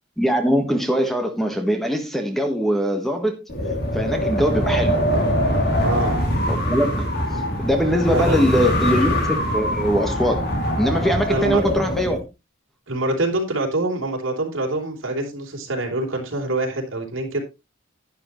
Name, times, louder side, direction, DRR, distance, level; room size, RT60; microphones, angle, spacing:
voice 1, 0.2-3.5 3.9-5.0 6.5-7.2 7.6-9.2 9.5-10.5 10.8-12.2, equal, ahead, 1.3 m, -22 dB
Wind, 3.5-12.2, equal, 55° left, 3.1 m, -23 dB
voice 2, 5.8-6.2 8.1-8.8 11.3-11.6 12.9-17.4, right 2 dB, 70° right, 3.5 m, -25 dB
11.5 x 9.8 x 3.1 m
head